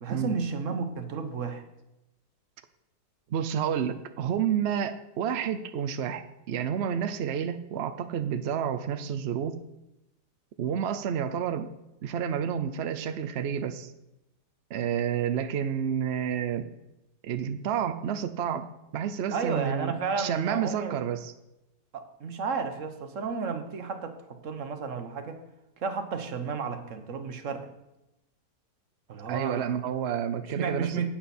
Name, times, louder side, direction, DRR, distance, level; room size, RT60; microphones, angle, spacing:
voice 1, 0.0-1.6 19.3-21.0 21.9-25.4 25.8-27.7 29.1-29.7 30.4-31.1, right 5 dB, 50° right, 7 dB, 1.3 m, -32 dB
voice 2, 3.3-9.6 10.6-11.7 12.0-13.9 14.7-16.7 17.2-21.3 29.3-31.1, right 8 dB, 70° right, 10 dB, 0.6 m, -30 dB
11.5 x 8.7 x 4.2 m, 0.92 s
omnidirectional pair, 1.8 m